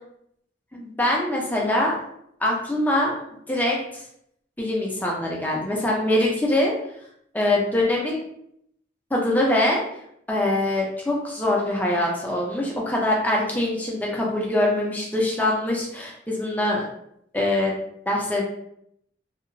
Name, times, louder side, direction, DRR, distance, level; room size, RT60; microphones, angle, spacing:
voice 1, 0.7-1.9 2.4-3.1 3.5-4.0 4.6-6.7 7.3-8.2 9.1-9.8 10.3-16.9 17.3-17.7 18.1-18.4, left 1 dB, 10° left, -3 dB, 0.5 m, -23 dB
2.8 x 2.1 x 2.5 m, 0.72 s
head